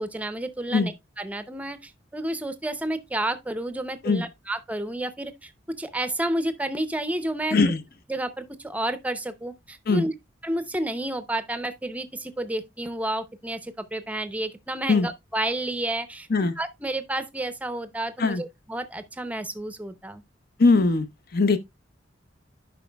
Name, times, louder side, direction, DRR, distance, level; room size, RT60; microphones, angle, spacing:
voice 1, 0.0-7.6 8.1-10.1 10.4-16.3 16.6-20.2, right 1 dB, 10° right, 0.6 m, -30 dB
voice 2, 20.6-21.1 21.3-21.6, left 3 dB, 55° left, 0.8 m, -20 dB
11.0 x 5.1 x 2.2 m
head